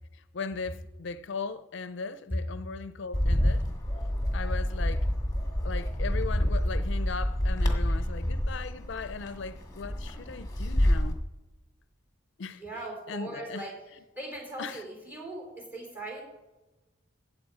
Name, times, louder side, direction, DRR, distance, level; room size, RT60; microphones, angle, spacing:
voice 1, 0.1-3.6 4.3-5.1 5.6-11.2 12.4-12.6 13.1-13.7 14.6-14.8, left 4 dB, 65° left, 0.5 m, -38 dB
Bird, 3.1-11.1, equal, 20° left, 1.6 m, -28 dB
voice 2, 12.5-16.2, right 1 dB, 10° right, 4.1 m, -38 dB
15.5 x 7.8 x 4.9 m
head